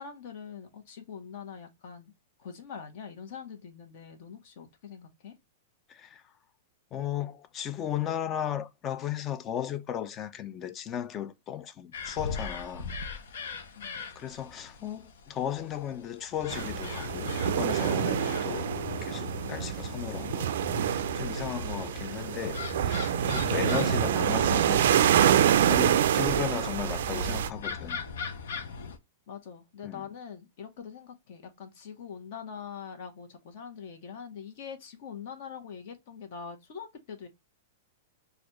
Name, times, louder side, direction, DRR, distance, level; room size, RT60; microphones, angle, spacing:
voice 1, 0.0-2.1 2.4-5.3 13.8-14.0 29.3-37.3, left 7 dB, 50° left, 1.2 m, -43 dB
voice 2, 5.9-6.2 6.9-12.9 14.0-18.7 19.0-28.0 29.8-30.1, left 10 dB, 25° left, 0.4 m, -36 dB
sound 1, 11.9-29.0, left 4 dB, 80° left, 0.8 m, -38 dB
sound 2, 16.5-27.5, right 10 dB, 70° right, 0.3 m, -26 dB
4.1 x 2.5 x 2.9 m
supercardioid pair, 155°, 0 cm